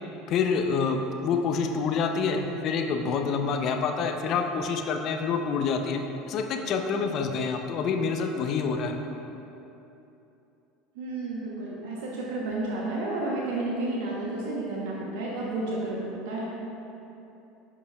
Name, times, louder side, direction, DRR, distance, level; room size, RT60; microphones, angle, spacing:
voice 1, 0.3-6.0 6.3-9.0, left 5 dB, 50° left, 4 dB, 0.6 m, -27 dB
voice 2, 11.0-16.4, right 2 dB, 70° right, -4 dB, 0.9 m, -31 dB
10.5 x 4.9 x 2.3 m, 2.9 s
hypercardioid pair, 75°, 0 cm